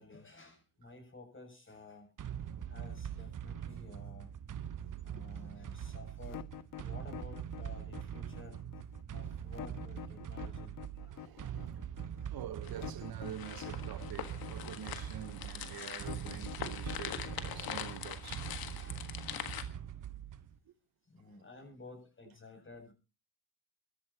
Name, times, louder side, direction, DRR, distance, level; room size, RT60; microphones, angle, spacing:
voice 1, 0.0-2.1 2.7-4.3 5.0-6.5 6.8-8.6 9.1-10.7 11.0-11.3 11.6-11.7 12.2-12.4 18.6-19.2 21.1-22.9, left 3 dB, 35° left, 7.5 m, -53 dB
sound 1, 2.2-20.6, right 9 dB, 60° right, 1.2 m, -43 dB
voice 2, 4.8-5.3 11.0-11.8 12.3-18.5 20.6-20.7 21.3-21.4, right 10 dB, 80° right, 1.3 m, -47 dB
sound 2, 6.2-19.1, left 11 dB, 65° left, 0.9 m, -48 dB
sound 3, 12.6-19.6, left 10 dB, 90° left, 1.6 m, -43 dB
25.0 x 13.0 x 2.9 m
cardioid pair, 75°, 35 cm